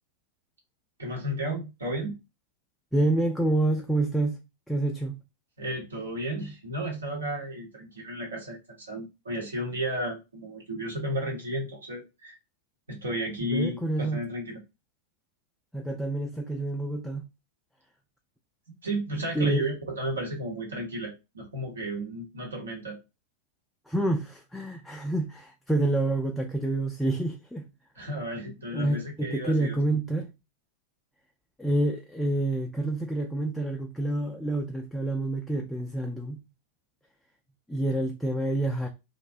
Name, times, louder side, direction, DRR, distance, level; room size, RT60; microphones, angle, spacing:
voice 1, 1.0-2.2 5.6-12.4 12.9-14.6 18.8-23.0 28.0-29.8, right 1 dB, 75° right, 0.8 m, -33 dB
voice 2, 2.9-4.4 4.7-5.2 13.4-14.2 15.7-17.3 19.3-19.7 23.9-27.7 28.7-30.3 31.6-36.4 37.7-38.9, right 2 dB, ahead, 0.3 m, -28 dB
2.4 x 2.0 x 2.5 m
figure-of-eight pair, 90°, 0 cm